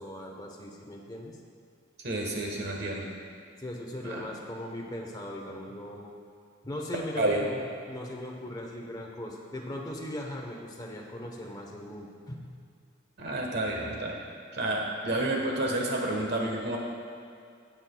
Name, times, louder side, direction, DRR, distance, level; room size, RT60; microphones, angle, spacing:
voice 1, 0.0-1.4 3.6-6.1 6.6-7.6 7.9-12.5, left 1 dB, 20° left, 0 dB, 1.0 m, -39 dB
voice 2, 2.0-3.1 4.0-4.3 7.2-7.5 13.2-14.2 14.5-16.8, right 1 dB, 55° right, 0 dB, 1.3 m, -30 dB
17.5 x 6.0 x 2.3 m, 2.3 s
head